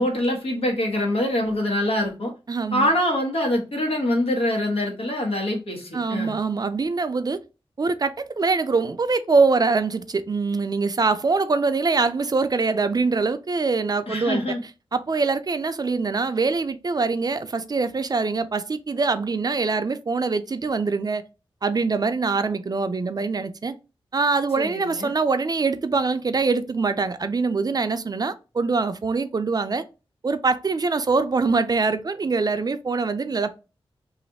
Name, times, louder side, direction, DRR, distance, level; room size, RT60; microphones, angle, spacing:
voice 1, 0.0-2.3 2.7-6.4 14.1-14.6 24.6-25.1, left 1 dB, 80° left, 1.4 m, -24 dB
voice 2, 2.5-2.9 5.9-7.4 7.8-14.4 14.9-21.2 21.6-23.7 24.1-29.8 30.2-33.5, right 4 dB, 40° right, 0.4 m, -23 dB
3.2 x 2.5 x 4.0 m
wide cardioid pair, 80°, 10 cm